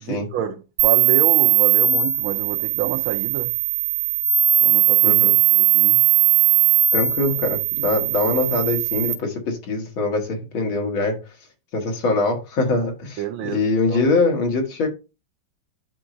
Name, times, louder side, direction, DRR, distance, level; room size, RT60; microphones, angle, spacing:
voice 1, 0.0-3.5 4.6-5.2 5.5-6.0 13.2-14.0, right 10 dB, 85° right, 1.6 m, -28 dB
sound 1, 0.8-9.1, right 11 dB, 65° right, 1.9 m, -19 dB
voice 2, 5.0-5.4 6.9-11.2 11.7-14.9, left 3 dB, 80° left, 2.6 m, -23 dB
11.0 x 4.6 x 2.6 m
omnidirectional pair, 2.2 m